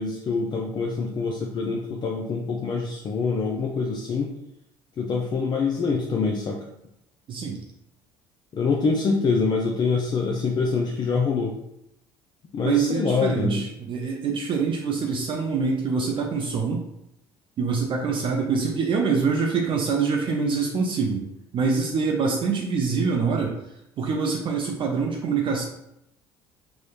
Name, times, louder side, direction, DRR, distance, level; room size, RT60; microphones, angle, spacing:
voice 1, 0.0-4.3 5.0-6.6 8.5-11.5 12.5-13.6, left 4 dB, 35° left, 0 dB, 0.4 m, -25 dB
voice 2, 7.3-7.6 12.6-16.8 17.6-21.3 21.5-23.6 24.0-25.6, right 5 dB, 45° right, 0 dB, 0.4 m, -25 dB
2.9 x 2.0 x 2.4 m, 0.80 s
hypercardioid pair, 60°, 12 cm